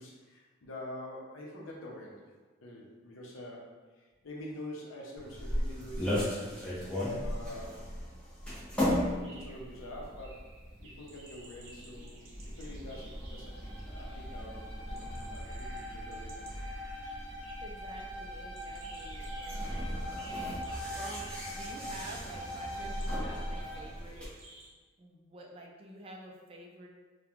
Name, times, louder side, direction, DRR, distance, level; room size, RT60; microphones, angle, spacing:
voice 1, 0.0-2.3 2.6-6.9 7.2-8.1 8.9-10.5 10.8-16.5, left 1 dB, 80° left, -2 dB, 0.6 m, -46 dB
sound 1, 5.2-24.3, equal, 5° left, 0.6 m, -38 dB
sound 2, 9.0-24.7, right 2 dB, 70° right, 0.6 m, -55 dB
Bowed string instrument, 13.4-23.9, equal, 40° left, 0.9 m, -43 dB
voice 2, 17.6-20.6 20.9-24.3 25.0-26.9, right 1 dB, 30° right, 0 dB, 0.3 m, -49 dB
2.9 x 2.1 x 2.4 m, 1.3 s
head